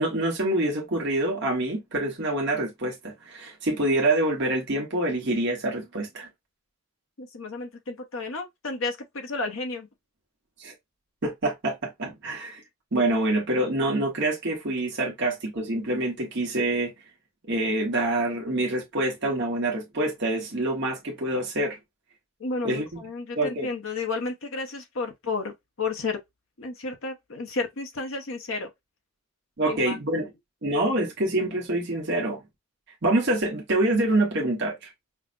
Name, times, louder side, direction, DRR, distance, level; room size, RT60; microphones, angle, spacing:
voice 1, 0.0-6.3 10.6-10.7 11.2-12.6 12.9-16.9 17.5-21.8 22.6-23.0 23.4-23.7 29.6-30.3 30.6-32.4 33.0-34.9, right 1 dB, 55° right, 1.0 m, -26 dB
voice 2, 7.2-9.9 22.4-26.2 26.6-28.7 29.6-30.0, left 3 dB, 65° left, 0.8 m, -32 dB
5.5 x 2.1 x 2.5 m
head